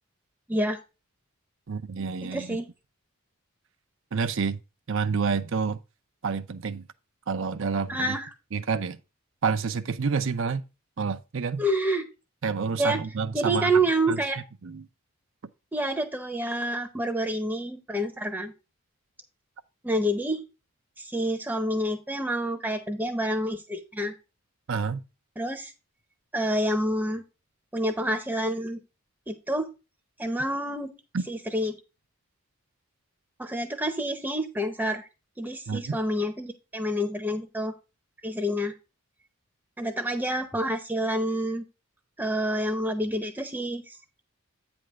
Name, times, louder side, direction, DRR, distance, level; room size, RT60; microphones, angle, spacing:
voice 1, 1.7-2.6 4.1-4.6 4.9-5.8 6.2-6.9 7.3-8.2 8.5-9.0 9.4-10.6 11.0-11.6 12.4-13.7 14.1-14.2 14.6-14.9 24.7-25.0 31.1-31.2 35.7-36.0, right 5 dB, 60° right, 0.6 m, -28 dB
voice 2, 2.2-2.7 7.9-8.3 11.6-12.1 12.8-13.0 13.3-14.4 15.7-18.5 19.8-20.4 21.0-24.1 25.4-25.7 26.3-27.2 27.7-28.8 29.3-29.7 30.2-30.9 31.3-31.7 33.4-35.1 35.4-37.7 38.2-38.7 39.8-41.6 42.2-44.0, right 1 dB, 10° right, 0.8 m, -28 dB
8.7 x 3.5 x 6.2 m
head